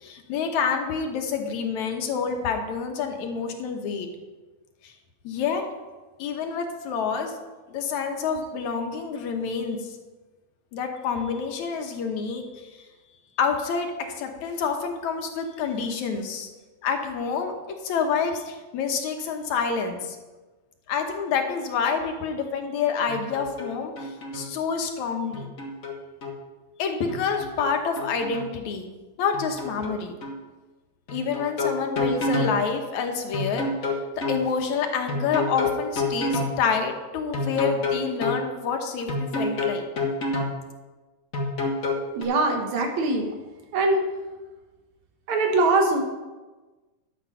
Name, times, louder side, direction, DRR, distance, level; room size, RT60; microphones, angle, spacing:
voice 1, 0.0-4.1 5.2-5.6 6.2-7.3 7.7-9.8 10.7-12.5 13.4-13.9 14.2-16.5 16.8-17.5 17.8-20.2 20.9-25.5 26.8-28.9 29.2-30.2 31.1-33.7 34.3-39.8, left 6 dB, 75° left, 4 dB, 2.5 m, -28 dB
sound 1, 23.1-23.7 24.0-24.5 25.3-26.4 27.1-28.5 29.3-30.0 30.2-30.4 31.1-32.5 33.3-34.4 35.1-36.5 37.3-38.4 39.1-40.5 41.3-42.2, left 2 dB, 35° left, 1.5 m, -28 dB
voice 2, 42.1-43.3 43.7-44.0 45.3-46.0, right 2 dB, 75° right, 3 dB, 2.7 m, -22 dB
12.0 x 7.6 x 5.6 m, 1.2 s
omnidirectional pair, 3.3 m